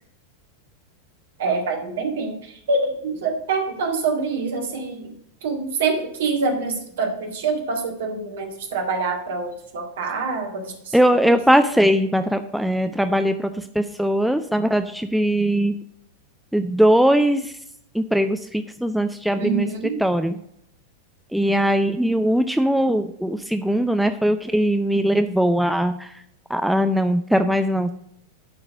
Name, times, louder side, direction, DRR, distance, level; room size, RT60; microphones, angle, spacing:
voice 1, 1.4-5.1 5.4-11.4 19.4-20.0, right 4 dB, 60° right, 3 dB, 1.9 m, -26 dB
voice 2, 10.9-13.5 13.8-15.7 16.5-17.5 17.9-19.7 20.0-20.4 21.3-26.1 26.5-27.9, equal, ahead, 8 dB, 0.5 m, -20 dB
10.5 x 4.0 x 6.1 m, 0.72 s
figure-of-eight pair, 90°, 0 cm